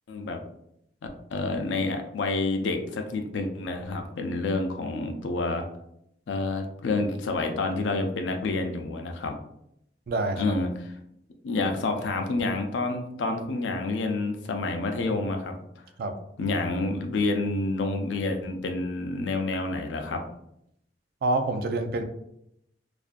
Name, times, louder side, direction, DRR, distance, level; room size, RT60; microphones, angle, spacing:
voice 1, 0.1-0.4 1.3-5.7 6.3-9.4 10.4-10.7 11.4-15.6 16.4-20.2, left 3 dB, 85° left, 5 dB, 0.4 m, -28 dB
voice 2, 10.1-10.4 16.0-16.1 21.2-22.0, right 2 dB, 55° right, 7 dB, 0.3 m, -26 dB
2.5 x 2.2 x 2.4 m, 0.76 s
head